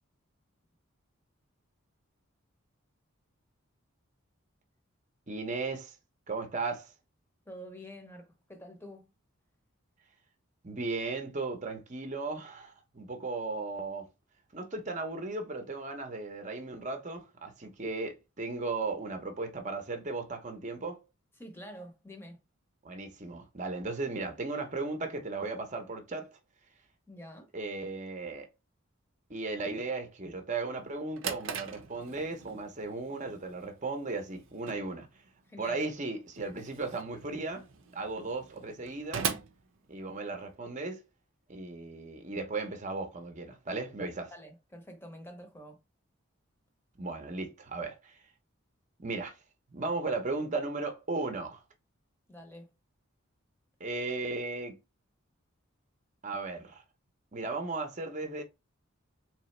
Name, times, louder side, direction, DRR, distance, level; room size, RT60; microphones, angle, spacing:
voice 1, 5.3-5.9 6.3-6.9 10.6-14.1 14.5-21.0 22.8-26.4 27.5-28.5 29.3-35.1 35.6-37.7 37.9-39.3 39.9-41.0 41.5-44.3 47.0-48.2 49.0-49.3 49.7-51.6 53.8-54.8 56.2-56.8 57.3-58.4, right 3 dB, 35° right, 0.8 m, -36 dB
voice 2, 7.5-9.1 21.4-22.4 27.1-27.5 35.4-35.9 36.4-36.5 44.3-45.8 52.3-52.7, equal, 10° left, 0.8 m, -47 dB
Drawer open or close, 30.8-40.6, right 6 dB, 70° right, 0.7 m, -41 dB
3.9 x 3.2 x 3.2 m
head